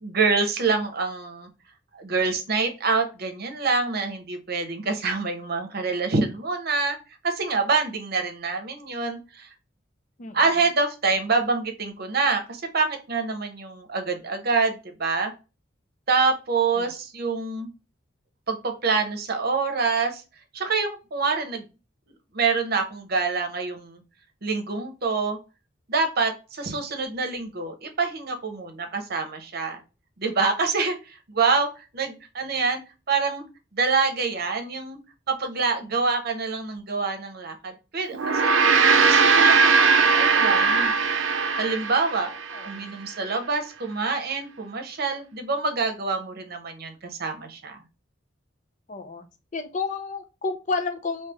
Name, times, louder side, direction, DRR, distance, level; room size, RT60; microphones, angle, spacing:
voice 1, 0.0-1.5 1.9-7.0 7.2-9.5 10.3-15.3 16.1-17.7 18.5-20.2 20.5-21.6 22.3-24.0 24.4-25.4 25.9-29.8 30.2-32.8 33.1-33.5 33.7-35.0 35.3-38.5 38.9-40.9 41.6-42.3 42.6-47.8, right 4 dB, 55° right, 5 dB, 0.8 m, -26 dB
Gong, 38.1-42.7, right 5 dB, 85° right, 0.5 m, -19 dB
voice 2, 42.5-43.0 48.9-49.2 49.5-51.3, left 4 dB, 40° left, 8 dB, 0.5 m, -31 dB
3.2 x 2.8 x 3.3 m, 0.30 s
head